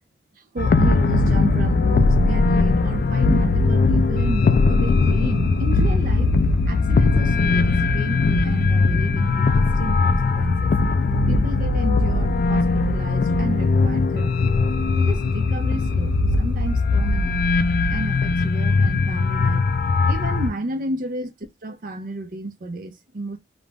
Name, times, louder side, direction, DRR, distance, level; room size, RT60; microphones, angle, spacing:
voice 1, 0.3-10.8 11.3-14.5 14.9-17.4 17.9-19.7 20.1-21.3 21.6-23.4, right 2 dB, 50° right, 0.5 m, -32 dB
sound 1, 0.6-20.5, left 3 dB, 55° left, 0.3 m, -19 dB
2.5 x 2.0 x 3.3 m
head